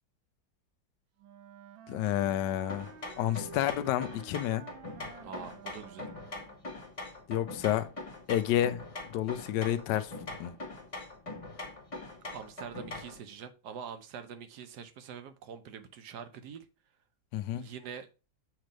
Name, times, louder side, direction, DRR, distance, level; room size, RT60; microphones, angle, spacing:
Wind instrument woodwind instrument, 1.2-6.7, right 7 dB, 80° right, 1.4 m, -51 dB
voice 1, 1.9-2.9 3.2-4.6 7.3-7.9 8.3-8.8 9.1-10.1 10.4-10.5 17.3-17.6, left 12 dB, 70° left, 1.2 m, -30 dB
sound 1, 2.7-13.2, left 2 dB, 30° left, 0.6 m, -43 dB
voice 2, 5.2-6.1 12.3-16.7 17.5-18.1, right 7 dB, 65° right, 1.3 m, -44 dB
7.4 x 3.2 x 5.0 m
omnidirectional pair, 2.1 m